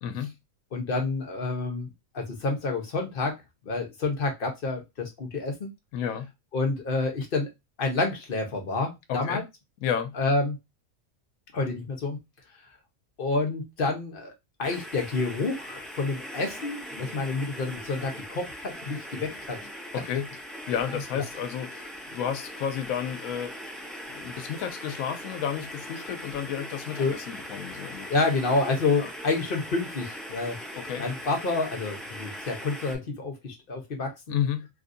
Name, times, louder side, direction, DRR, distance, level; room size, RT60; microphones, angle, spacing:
voice 1, 0.0-0.3 5.9-6.3 9.1-9.4 9.8-10.1 19.9-20.3 20.7-28.1 29.0-29.1 30.7-31.0 34.3-34.7, left 8 dB, 80° left, 1.0 m, -32 dB
voice 2, 0.7-3.4 3.6-5.7 6.5-7.5 7.8-9.4 10.2-10.6 11.5-12.2 13.2-14.3 14.6-19.6 27.0-27.1 28.1-30.6 31.0-34.4, left 3 dB, 45° left, 0.9 m, -28 dB
sound 1, 14.6-33.0, equal, ahead, 0.4 m, -40 dB
3.3 x 2.6 x 2.5 m
omnidirectional pair, 1.5 m